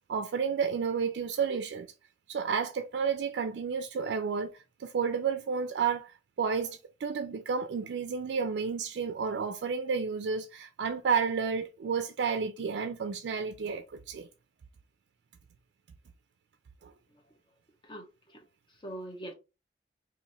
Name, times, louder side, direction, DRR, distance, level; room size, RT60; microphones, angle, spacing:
voice 1, 0.1-1.9 2.3-14.3 16.8-16.9, right 6 dB, 80° right, 0.3 m, -31 dB
voice 2, 17.8-19.3, right 1 dB, 25° left, 0.8 m, -44 dB
2.9 x 2.5 x 4.1 m
head